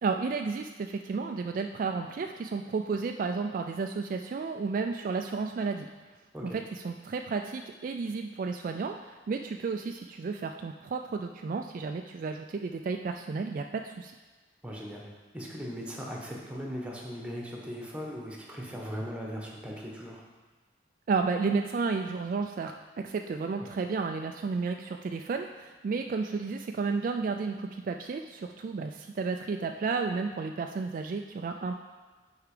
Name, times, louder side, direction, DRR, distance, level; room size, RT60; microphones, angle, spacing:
voice 1, 0.0-5.9 6.4-14.1 21.1-31.8, right 4 dB, 50° right, 5 dB, 0.3 m, -32 dB
voice 2, 14.6-20.2, equal, 5° right, -2 dB, 1.2 m, -39 dB
8.0 x 4.8 x 5.0 m, 1.3 s
head